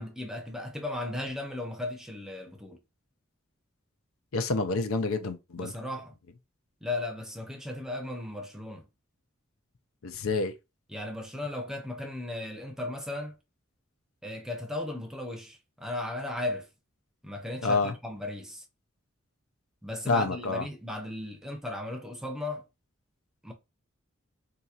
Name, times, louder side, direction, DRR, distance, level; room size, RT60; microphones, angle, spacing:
voice 1, 0.0-2.8 5.6-6.1 6.8-8.9 10.9-13.3 14.2-16.7 17.2-18.6 19.8-22.6 23.4-23.5, left 2 dB, 5° right, 0.6 m, -36 dB
voice 2, 4.3-5.7 10.0-10.5 17.6-17.9 20.1-20.6, left 3 dB, 90° left, 0.5 m, -28 dB
3.9 x 2.8 x 2.4 m
head